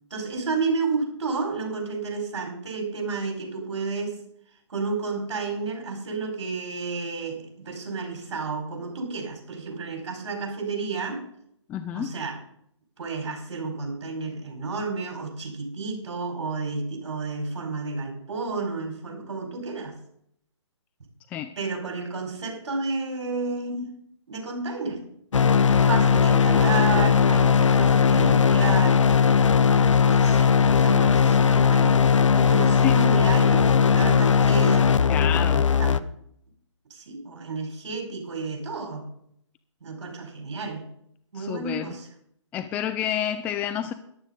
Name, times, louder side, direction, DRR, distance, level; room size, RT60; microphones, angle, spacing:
voice 1, 0.1-4.2 4.7-11.2 11.9-12.4 13.0-20.0 21.6-23.8 24.3-25.0 25.7-29.0 30.0-32.0 32.3-34.9 35.8-36.0 36.9-39.1 39.8-40.9 41.3-42.1, right 4 dB, 65° right, 2 dB, 5.1 m, -31 dB
voice 2, 11.7-12.1 21.3-21.5 32.8-32.9 35.1-35.7 41.4-41.9 42.5-43.9, left 10 dB, 10° left, 9 dB, 0.3 m, -29 dB
sound 1, 25.3-36.0, left 6 dB, 80° left, 0.8 m, -18 dB
14.0 x 11.5 x 3.9 m, 0.72 s
hypercardioid pair, 140°, 16 cm